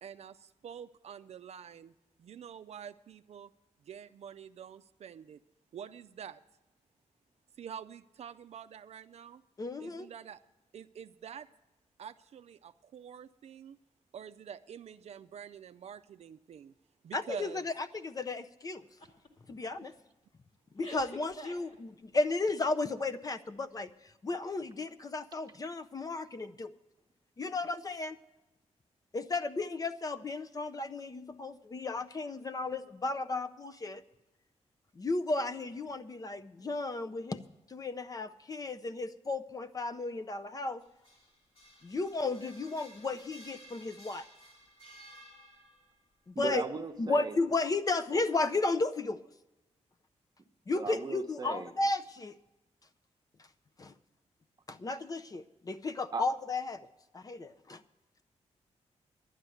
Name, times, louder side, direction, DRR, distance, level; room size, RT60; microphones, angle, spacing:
voice 1, 0.0-1.9 2.2-3.5 3.9-5.4 5.7-6.4 7.6-9.4 9.8-10.4 10.7-11.5 12.0-13.8 14.1-16.7 17.0-17.7, right 8 dB, 65° right, 11 dB, 0.4 m, -47 dB
voice 2, 9.6-10.1 17.1-18.8 19.5-19.9 20.7-26.7 27.4-28.2 29.1-34.0 35.0-37.4 37.7-40.8 41.8-44.3 46.3-46.7 47.0-49.2 50.7-52.4 53.8-53.9 54.7-56.8 57.1-57.8, left 3 dB, 30° left, 10 dB, 0.5 m, -34 dB
sound 1, 19.0-19.3 19.7-19.9 20.8-22.3, left 1 dB, 50° left, 2.1 m, -47 dB
sound 2, 40.8-46.0, right 1 dB, 65° left, 3.8 m, -56 dB
voice 3, 46.3-47.4 50.7-51.7 56.1-56.2, right 4 dB, 35° right, 5 dB, 0.9 m, -37 dB
11.5 x 9.6 x 7.7 m, 1.0 s
wide cardioid pair, 120°, 12 cm